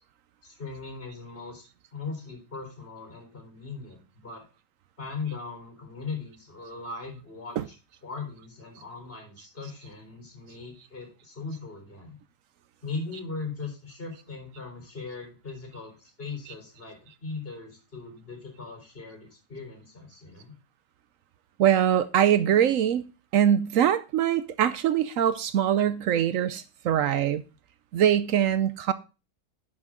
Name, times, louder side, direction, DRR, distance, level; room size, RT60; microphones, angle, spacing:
voice 1, 0.4-1.6 1.9-4.4 5.0-7.7 8.0-12.2 12.8-20.6, left 4 dB, 45° left, 4.3 m, -39 dB
voice 2, 21.6-23.0 23.3-27.4 27.9-28.9, right 10 dB, 70° right, 1.0 m, -23 dB
10.5 x 6.4 x 3.7 m
omnidirectional pair, 1.5 m